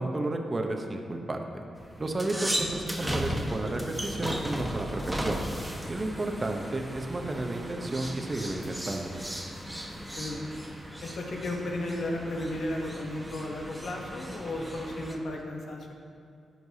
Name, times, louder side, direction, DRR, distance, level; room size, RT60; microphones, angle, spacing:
voice 1, 0.0-1.4 2.0-5.4 5.9-9.1, right 2 dB, 35° right, 3 dB, 0.9 m, -32 dB
sound 1, 1.8-15.1, equal, 10° right, 1.2 m, -36 dB
voice 2, 11.0-15.9, left 1 dB, 65° left, 1 dB, 1.0 m, -34 dB
13.0 x 4.6 x 2.8 m, 2.3 s
supercardioid pair, 45°, 0 cm